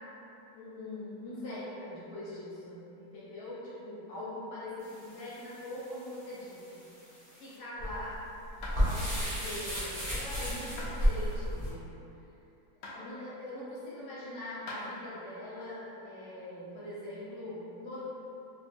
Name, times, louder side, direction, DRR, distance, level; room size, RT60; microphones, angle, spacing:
voice 1, 0.5-6.8 7.3-8.2 8.8-11.9 12.8-18.0, left 1 dB, 60° left, -9 dB, 1.3 m, -42 dB
sound 1, 4.8-11.7, equal, 50° right, 0.4 m, -34 dB
sound 2, 8.6-8.8 10.8-11.0 12.8-13.0 14.7-14.8, left 2 dB, 85° left, 0.9 m, -41 dB
3.4 x 2.1 x 2.8 m, 2.9 s
omnidirectional pair, 2.4 m